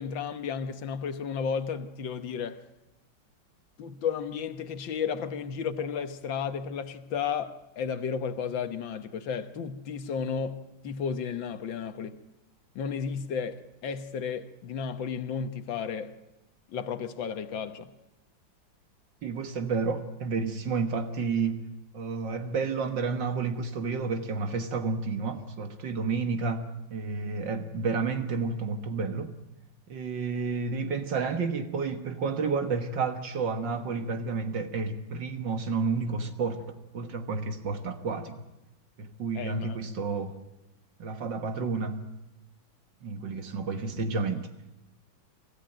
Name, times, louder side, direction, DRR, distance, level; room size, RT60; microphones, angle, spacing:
voice 1, 0.0-2.6 3.8-12.2 12.8-16.2 16.7-17.9 39.3-39.8, left 6 dB, 75° left, 1.9 m, -33 dB
voice 2, 19.2-21.6 21.9-29.3 29.9-36.7 36.9-38.4 39.0-40.3 41.0-42.0 43.0-44.5, right 4 dB, 65° right, 2.1 m, -30 dB
24.5 x 15.0 x 9.0 m
omnidirectional pair, 2.1 m